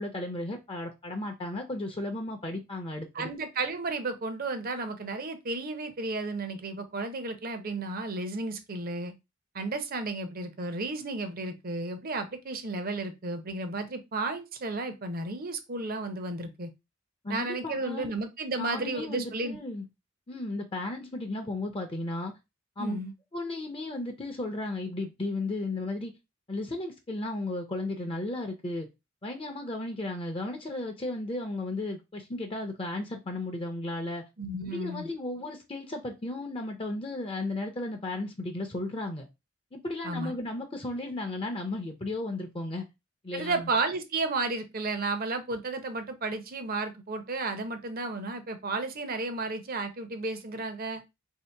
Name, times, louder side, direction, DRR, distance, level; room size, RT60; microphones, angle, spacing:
voice 1, 0.0-3.3 17.2-18.1 18.6-19.9 20.3-22.3 22.8-23.0 23.3-26.1 26.5-28.9 29.2-34.2 34.6-39.3 39.7-42.8 43.2-43.7, left 2 dB, 25° left, 0.6 m, -34 dB
voice 2, 3.1-9.1 9.5-16.7 17.3-19.6 22.8-23.1 34.4-35.1 40.0-40.3 43.3-51.0, right 3 dB, 45° right, 0.7 m, -33 dB
3.0 x 2.8 x 4.4 m
head